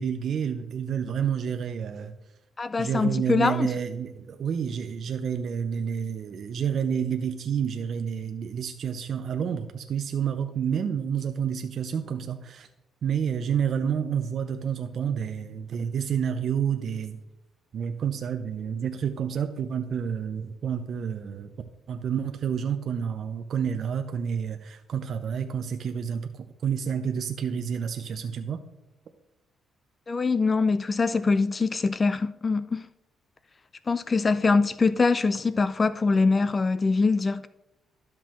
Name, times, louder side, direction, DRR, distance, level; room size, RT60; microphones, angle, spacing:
voice 1, 0.0-2.1 2.8-12.7 13.0-17.2 17.7-21.5 21.9-28.6, right 7 dB, 60° right, 0.5 m, -29 dB
voice 2, 2.6-3.7 30.1-32.9 33.9-37.5, left 4 dB, 30° left, 0.3 m, -23 dB
12.0 x 5.9 x 3.1 m
cardioid pair, 90°, 0 cm